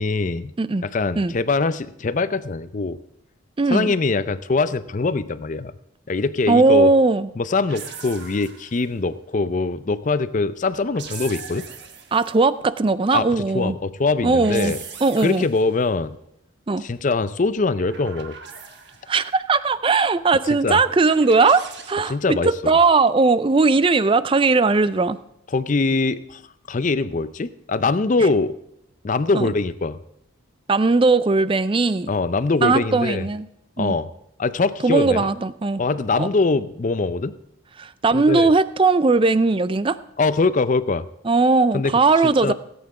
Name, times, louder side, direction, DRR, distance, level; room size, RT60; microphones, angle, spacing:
voice 1, 0.0-0.5 0.8-3.0 3.7-5.7 6.1-6.9 7.4-11.7 13.1-13.3 13.5-14.8 15.2-16.2 16.8-18.4 20.6-20.8 22.1-22.5 25.5-26.4 26.7-28.5 29.0-30.0 32.1-33.2 33.8-34.1 34.4-35.3 35.8-37.3 38.1-38.5 40.2-41.0 41.7-41.9 42.2-42.5, left 3 dB, 35° left, 15 dB, 0.4 m, -22 dB
voice 2, 3.6-3.9 6.5-7.3 12.1-13.8 14.2-14.7 15.0-15.5 16.7-16.8 19.1-25.2 28.2-28.3 29.3-29.5 30.7-32.1 32.6-33.5 33.8-34.0 34.8-35.8 36.2-36.3 37.8-40.0 41.2-42.5, right 3 dB, 25° right, 15 dB, 0.4 m, -18 dB
sound 1, 7.7-9.0 10.7-12.4 14.1-15.8 17.6-19.2 21.0-21.9, right 6 dB, 50° right, 1.3 m, -40 dB
17.5 x 8.8 x 4.8 m, 0.80 s
head